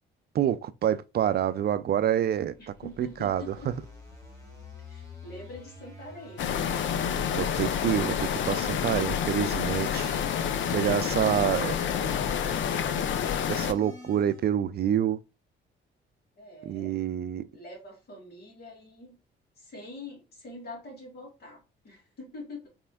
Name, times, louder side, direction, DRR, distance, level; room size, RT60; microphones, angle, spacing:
voice 1, 0.3-2.5 3.0-3.5 7.4-10.2 10.7-11.7 13.5-15.2 16.7-17.4, right 10 dB, 55° right, 0.4 m, -27 dB
sound 1, 2.5-14.6, left 3 dB, 15° left, 2.2 m, -48 dB
voice 2, 2.6-3.7 4.9-6.6 16.4-17.0 17.5-19.2 19.6-22.7, left 2 dB, 55° left, 2.4 m, -45 dB
sound 2, 6.4-13.7, left 8 dB, 70° left, 0.6 m, -28 dB
4.3 x 4.1 x 2.2 m
cardioid pair, 90°, 20 cm